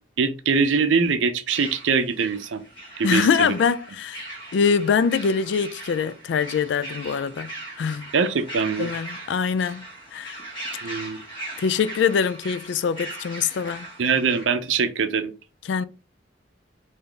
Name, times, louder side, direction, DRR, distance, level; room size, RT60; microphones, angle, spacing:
voice 1, 0.2-2.6 3.0-3.5 8.1-8.9 10.8-11.2 14.0-15.3, right 5 dB, 85° right, 0.5 m, -23 dB
sound 1, 1.5-14.4, right 2 dB, 25° left, 1.5 m, -39 dB
voice 2, 3.0-7.5 7.8-8.1 8.8-9.9 10.1-10.4 11.6-13.9 15.7-15.8, left 6 dB, 70° left, 0.3 m, -23 dB
3.7 x 2.7 x 3.4 m
head